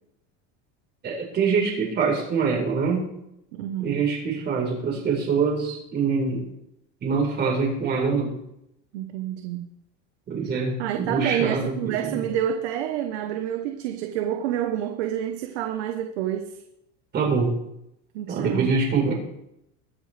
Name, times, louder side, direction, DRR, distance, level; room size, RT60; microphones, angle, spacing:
voice 1, 1.0-3.1 3.8-6.4 7.0-8.4 10.3-12.2 17.1-17.6 18.3-19.1, right 5 dB, 30° right, -1 dB, 4.4 m, -24 dB
voice 2, 3.5-4.0 8.9-9.7 10.8-16.6 18.1-18.7, right 10 dB, 80° right, 5 dB, 1.1 m, -28 dB
22.0 x 8.0 x 3.4 m, 0.81 s
supercardioid pair, 145°, 32 cm